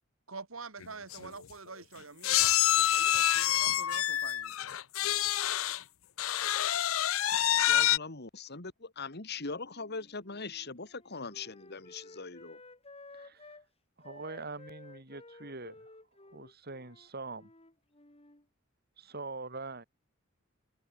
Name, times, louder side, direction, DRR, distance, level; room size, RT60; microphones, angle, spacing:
voice 1, 0.3-4.8, right 4 dB, 85° right, 2.3 m, -47 dB
sound 1, 0.8-0.9 1.1-1.3 2.2-5.8 6.2-8.0, left 12 dB, 90° left, 0.6 m, -27 dB
voice 2, 7.3-12.6, left 4 dB, 55° left, 2.5 m, -41 dB
Wind instrument woodwind instrument, 9.7-13.7 14.0-18.5, left 2 dB, 30° left, 5.1 m, -54 dB
voice 3, 13.1-13.6 14.0-17.5 19.0-19.8, right 3 dB, 50° right, 4.7 m, -44 dB
head